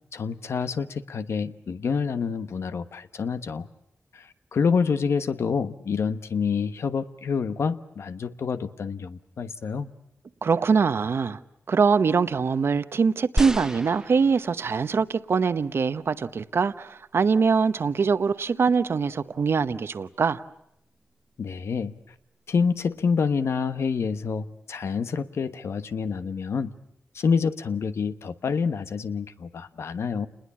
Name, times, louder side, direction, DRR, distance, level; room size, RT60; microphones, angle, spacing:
voice 1, 0.1-3.7 4.1-9.9 21.4-21.9 22.5-26.7 27.1-30.3, left 5 dB, 75° left, 1.2 m, -27 dB
voice 2, 10.4-11.4 11.7-20.4, right 5 dB, 60° right, 1.0 m, -23 dB
sound 1, 13.4-14.9 15.6-15.7, right 1 dB, 10° right, 1.0 m, -31 dB
29.0 x 21.0 x 8.5 m
wide cardioid pair, 90°, 5 cm